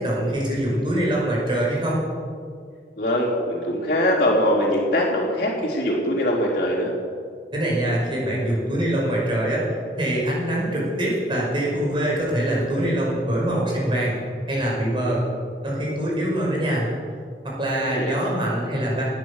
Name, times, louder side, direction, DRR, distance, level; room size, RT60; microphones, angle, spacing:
voice 1, 0.0-2.0 7.5-9.6 10.0-14.2 14.5-15.3 15.6-16.9 17.4-19.0, right 1 dB, 30° right, -4 dB, 5.3 m, -24 dB
voice 2, 3.0-6.9 17.8-18.1, left 1 dB, 50° left, -10 dB, 3.9 m, -22 dB
19.0 x 10.0 x 6.6 m, 2.1 s
head